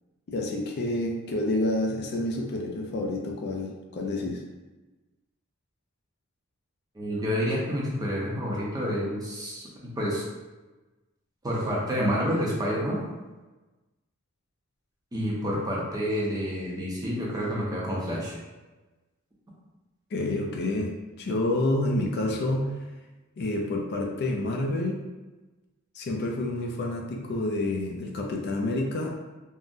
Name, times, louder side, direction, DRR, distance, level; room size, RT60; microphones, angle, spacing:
voice 1, 0.3-4.4 20.1-20.9 21.2-22.7 23.4-25.0 25.9-29.1, left 2 dB, 50° left, 0 dB, 0.4 m, -28 dB
voice 2, 6.9-10.2 11.4-13.0 15.1-18.4, equal, 15° right, -5 dB, 0.6 m, -29 dB
3.6 x 2.1 x 2.5 m, 1.2 s
head